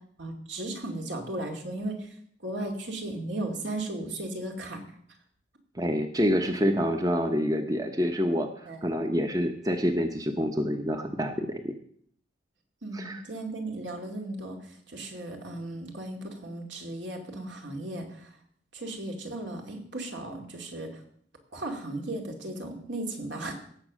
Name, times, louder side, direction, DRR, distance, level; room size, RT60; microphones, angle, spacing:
voice 1, 0.2-2.1 2.4-4.8 8.7-8.8 12.8-18.4 18.7-21.0 21.5-23.5, right 1 dB, 70° right, 2 dB, 2.6 m, -36 dB
voice 2, 5.7-11.7 12.9-13.2, equal, 20° right, 6 dB, 0.8 m, -27 dB
17.5 x 7.3 x 6.2 m, 0.62 s
head